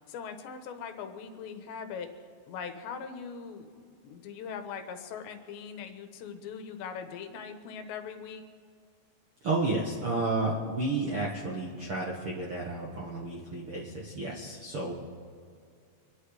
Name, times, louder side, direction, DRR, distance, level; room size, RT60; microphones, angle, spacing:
voice 1, 0.1-3.7 4.0-8.4, left 6 dB, 85° left, 6 dB, 3.4 m, -41 dB
voice 2, 9.4-14.9, right 2 dB, 55° right, -3 dB, 1.5 m, -31 dB
26.0 x 11.0 x 4.9 m, 2.3 s
omnidirectional pair, 5.0 m